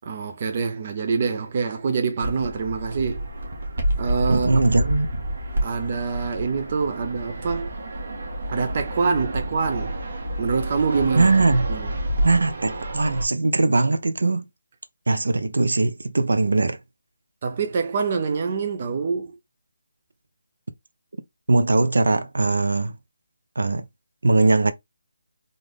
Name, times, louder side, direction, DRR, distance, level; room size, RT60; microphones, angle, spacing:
voice 1, 0.0-3.3 4.0-4.6 5.6-7.7 8.5-10.0 10.4-11.3 11.7-11.9 17.4-19.4, right 5 dB, 25° right, 0.4 m, -25 dB
Fixed-wing aircraft airplane, 2.2-13.2, right 1 dB, 50° right, 1.4 m, -29 dB
voice 2, 4.3-5.2 11.1-11.7 12.2-14.5 15.1-16.8 21.5-22.9 23.6-23.9 24.2-24.7, right 3 dB, 75° right, 0.7 m, -20 dB
3.7 x 2.5 x 3.3 m
hypercardioid pair, 180°, 0 cm